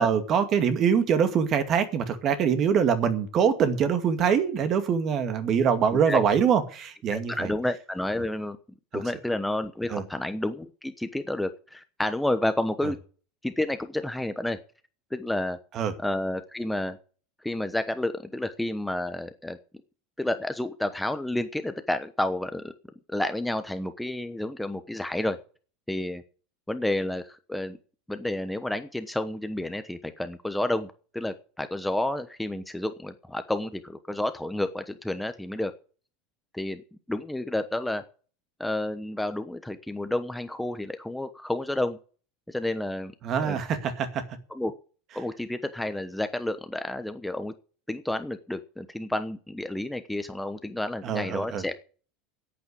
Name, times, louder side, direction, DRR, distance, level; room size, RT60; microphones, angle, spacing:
voice 1, 0.0-7.5 8.9-9.0 9.9-10.1 12.8-12.9 15.7-15.9 43.2-44.4 51.0-51.6, right 7 dB, 40° right, 9 dB, 2.2 m, -24 dB
voice 2, 7.1-8.6 8.9-13.0 13.4-14.6 15.1-15.6 16.0-17.0 17.4-19.6 20.2-22.7 23.1-25.4 25.9-26.2 26.7-27.8 28.1-35.7 36.5-36.8 37.1-38.0 38.6-42.0 42.5-43.1 43.4-43.6 44.5-44.7 45.1-47.5 47.9-51.8, left 1 dB, 5° left, 9 dB, 1.0 m, -30 dB
10.5 x 8.7 x 8.5 m, 0.40 s
supercardioid pair, 130°, 0 cm